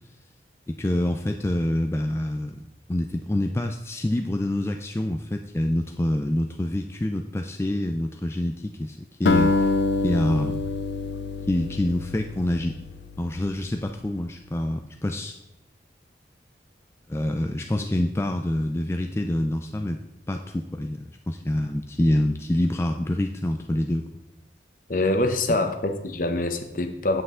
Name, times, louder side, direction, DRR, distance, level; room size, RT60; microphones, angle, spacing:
voice 1, 0.7-9.7 10.0-10.6 11.5-12.8 13.2-15.3 17.1-20.0 20.3-24.1, left 1 dB, 15° left, 4 dB, 0.3 m, -26 dB
Acoustic guitar, 9.3-13.7, left 3 dB, 80° left, 0.5 m, -26 dB
voice 2, 24.9-27.2, left 2 dB, 50° left, 7 dB, 0.8 m, -25 dB
8.1 x 7.6 x 3.7 m, 0.88 s
head